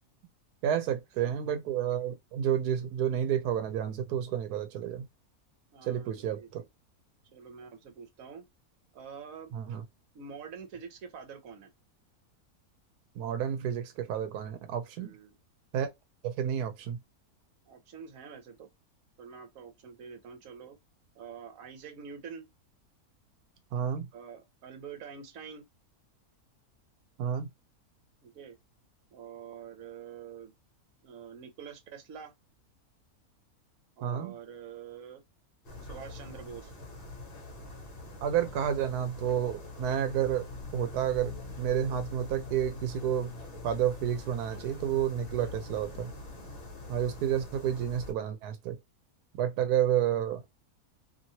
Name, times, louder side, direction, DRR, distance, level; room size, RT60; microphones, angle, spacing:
voice 1, 0.6-5.1 5.9-6.6 9.5-9.8 13.2-15.2 15.7-15.9 16.2-17.0 23.7-24.1 27.2-27.5 34.0-34.3 38.2-43.3 43.6-46.1 46.9-48.8 49.4-50.4, right 9 dB, 85° right, 1.1 m, -30 dB
voice 2, 5.7-6.6 7.3-8.5 8.9-9.5 10.1-11.7 15.0-15.3 17.7-18.7 19.2-20.8 21.1-22.5 24.1-25.7 28.2-28.6 29.1-30.5 31.0-32.3 34.0-35.2 35.8-36.7 45.4-45.5, right 6 dB, 65° right, 1.2 m, -46 dB
sound 1, 35.6-48.1, left 2 dB, 45° left, 1.0 m, -44 dB
2.9 x 2.8 x 2.7 m
omnidirectional pair, 1.6 m